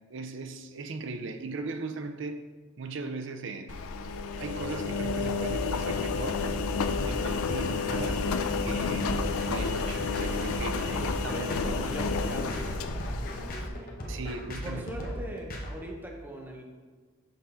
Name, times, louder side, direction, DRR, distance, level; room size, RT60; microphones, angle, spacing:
voice 1, 0.1-2.5 2.8-3.9 4.4-6.5 7.1-8.3 8.6-10.8 11.2-12.0 14.1-14.9, right 3 dB, 55° right, 8 dB, 0.5 m, -38 dB
Engine, 3.7-13.7, left 4 dB, 85° left, 0.4 m, -31 dB
sound 1, 5.0-15.7, equal, 40° left, 0.9 m, -37 dB
voice 2, 10.8-12.8 13.1-13.9 14.6-16.6, right 1 dB, 10° right, 0 dB, 0.8 m, -40 dB
6.5 x 3.8 x 5.6 m, 1.5 s
head